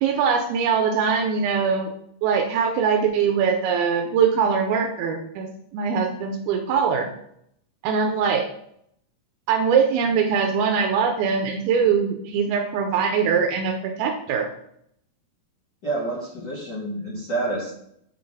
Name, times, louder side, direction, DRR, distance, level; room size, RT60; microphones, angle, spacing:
voice 1, 0.0-1.9 2.2-7.1 7.8-8.4 9.5-14.5, right 6 dB, 85° right, 3 dB, 2.6 m, -22 dB
voice 2, 15.8-17.7, right 2 dB, 65° left, -6 dB, 1.0 m, -28 dB
6.6 x 4.0 x 4.8 m, 0.70 s
omnidirectional pair, 4.4 m